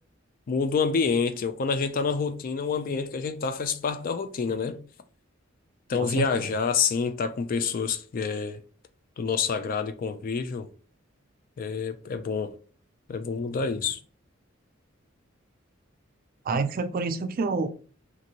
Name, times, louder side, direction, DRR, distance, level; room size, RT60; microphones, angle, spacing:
voice 1, 0.5-4.8 5.9-8.6 9.2-10.7 11.6-12.6 13.1-14.0, left 5 dB, 45° left, 0.3 m, -27 dB
voice 2, 6.0-6.5 16.5-17.8, right 4 dB, 45° right, 0.3 m, -28 dB
2.8 x 2.5 x 2.7 m
head